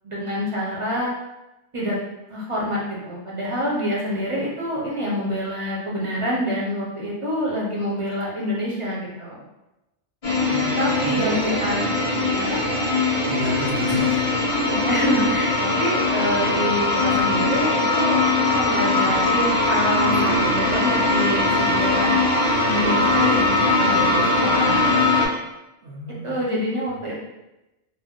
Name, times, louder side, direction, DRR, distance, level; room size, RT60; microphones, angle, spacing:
voice 1, 0.0-1.1 1.7-2.0 2.3-9.4 10.8-11.8 12.3-12.6 14.7-22.2 22.6-24.9 26.2-27.2, equal, 40° right, -5 dB, 0.5 m, -26 dB
sound 1, 10.2-25.3, left 2 dB, 40° left, 0.6 m, -21 dB
voice 2, 10.5-11.3 13.3-14.2 25.8-26.4, right 2 dB, 75° right, -3 dB, 0.9 m, -31 dB
2.5 x 2.0 x 3.6 m, 0.97 s
omnidirectional pair, 1.2 m